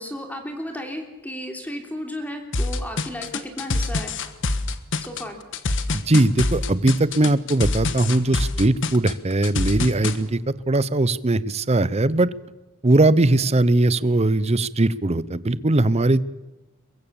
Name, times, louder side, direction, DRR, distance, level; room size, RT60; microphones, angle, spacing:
voice 1, 0.0-4.1 5.0-5.4, left 1 dB, 5° left, 4 dB, 3.3 m, -34 dB
sound 1, 2.5-10.2, left 2 dB, 60° left, 1.5 m, -25 dB
voice 2, 6.1-10.4 10.7-12.3 12.8-16.2, right 2 dB, 30° right, 18 dB, 0.7 m, -20 dB
23.0 x 23.0 x 7.1 m, 1.1 s
head